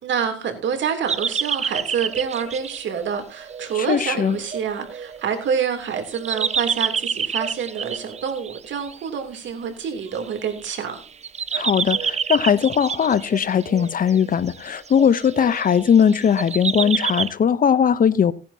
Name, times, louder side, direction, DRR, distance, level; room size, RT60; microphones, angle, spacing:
voice 1, 0.0-11.0, right 7 dB, 70° right, 3.1 m, -27 dB
sound 1, 1.1-9.0 10.0-10.7 11.0-17.3, right 6 dB, 35° right, 0.6 m, -28 dB
voice 2, 3.7-4.4 11.5-18.3, left 7 dB, 45° left, 0.8 m, -19 dB
17.5 x 10.5 x 2.8 m
cardioid pair, 90°, 20 cm